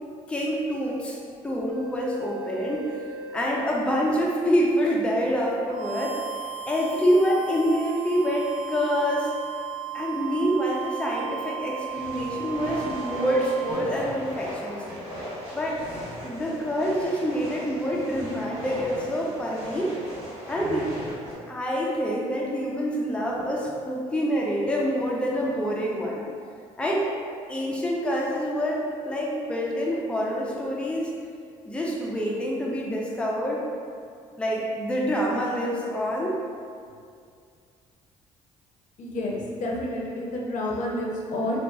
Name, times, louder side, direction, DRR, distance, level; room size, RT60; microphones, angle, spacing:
voice 1, 0.3-2.9 3.3-6.2 6.7-9.3 9.9-14.8 15.5-15.8 16.2-19.9 20.5-20.9 21.5-26.2 26.8-27.1 27.5-31.1 31.6-33.6 34.4-36.3, equal, 10° left, -3 dB, 0.4 m, -26 dB
sound 1, 1.7-3.8 5.7-13.7, right 9 dB, 70° right, 0.4 m, -37 dB
sound 2, 11.9-21.3, equal, 50° right, 1.4 m, -38 dB
voice 2, 39.0-41.6, left 1 dB, 65° left, -3 dB, 0.5 m, -29 dB
2.6 x 2.3 x 2.3 m, 2.3 s
supercardioid pair, 75°, 14 cm